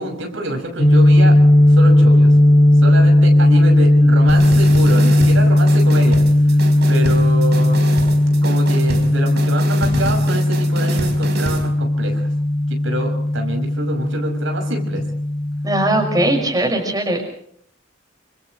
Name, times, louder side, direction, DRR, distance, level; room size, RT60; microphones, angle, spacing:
voice 1, 0.0-1.3 1.7-2.3 2.8-6.6 6.9-7.8 8.4-12.3 12.7-15.0, right 1 dB, 75° right, 3 dB, 6.3 m, -26 dB
sound 1, 0.8-16.4, left 1 dB, 30° left, 1.5 m, -15 dB
sound 2, 4.3-11.7, right 1 dB, 55° right, 4.9 m, -28 dB
voice 2, 15.6-17.3, right 1 dB, 20° right, 2 dB, 6.0 m, -19 dB
29.5 x 27.0 x 3.3 m, 0.64 s
head